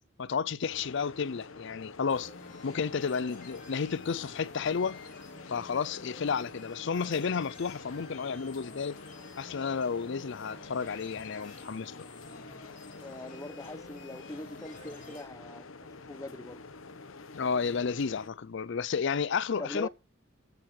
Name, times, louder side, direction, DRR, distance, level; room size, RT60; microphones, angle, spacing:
voice 1, 0.2-2.3 2.6-5.0 5.5-8.9 9.4-12.1 17.3-19.9, left 5 dB, 60° left, 0.5 m, -32 dB
sound 1, 0.6-18.3, left 3 dB, 80° left, 1.1 m, -48 dB
sound 2, 2.1-15.2, left 2 dB, 40° left, 4.3 m, -51 dB
voice 2, 13.0-15.7 16.1-16.6 19.6-19.9, left 1 dB, 15° left, 0.9 m, -42 dB
13.5 x 7.8 x 4.4 m
head